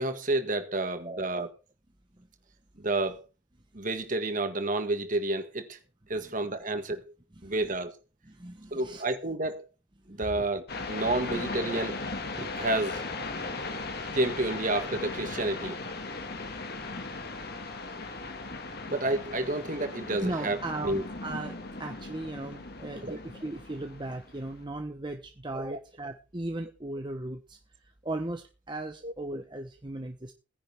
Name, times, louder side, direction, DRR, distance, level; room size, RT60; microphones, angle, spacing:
voice 1, 0.0-1.5 2.8-3.2 3.7-5.8 6.1-7.1 7.4-8.0 8.7-9.7 10.1-12.0 12.4-13.1 14.1-15.8 18.9-20.6 20.8-21.0 23.0-23.2 25.7-25.8 29.0-29.1, right 2 dB, 40° right, 1.8 m, -30 dB
voice 2, 0.8-1.3 6.2-6.3 7.4-7.7 8.2-9.0 10.1-10.2 20.2-27.6 28.0-30.3, right 2 dB, 20° right, 1.0 m, -37 dB
sound 1, 10.7-24.6, left 3 dB, 50° left, 2.0 m, -38 dB
18.0 x 10.5 x 3.5 m
head